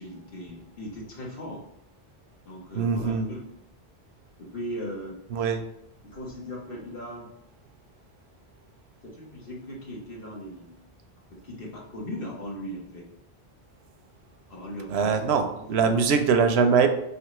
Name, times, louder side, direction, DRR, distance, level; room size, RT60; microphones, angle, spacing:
voice 1, 0.0-1.6 2.4-3.4 4.4-5.2 6.0-7.3 9.0-10.8 11.4-13.1 14.5-15.2 15.6-16.1, equal, 60° left, -3 dB, 1.4 m, -38 dB
voice 2, 2.7-3.3 5.3-5.6 14.9-16.9, right 5 dB, 85° right, 7 dB, 0.8 m, -22 dB
5.2 x 3.3 x 3.0 m, 0.79 s
omnidirectional pair, 1.1 m